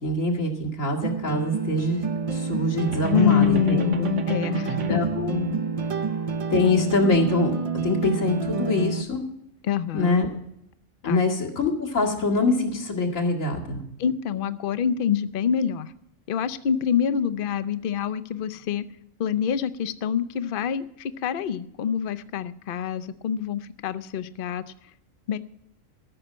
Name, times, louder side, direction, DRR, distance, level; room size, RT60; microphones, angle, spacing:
voice 1, 0.0-3.9 4.9-5.5 6.5-7.5 7.8-9.2 9.9-10.3 11.0-13.9, left 2 dB, 75° left, 0 dB, 2.5 m, -24 dB
sound 1, 1.0-9.0, right 5 dB, 40° right, 0.5 m, -28 dB
sound 2, 2.9-5.2, right 4 dB, 70° right, 1.4 m, -33 dB
voice 2, 3.1-5.0 9.6-10.3 11.0-11.2 14.0-15.9 16.3-18.8 19.2-24.6 25.3-25.4, left 8 dB, 50° left, 12 dB, 0.7 m, -26 dB
14.5 x 6.5 x 8.7 m, 0.77 s
omnidirectional pair, 1.3 m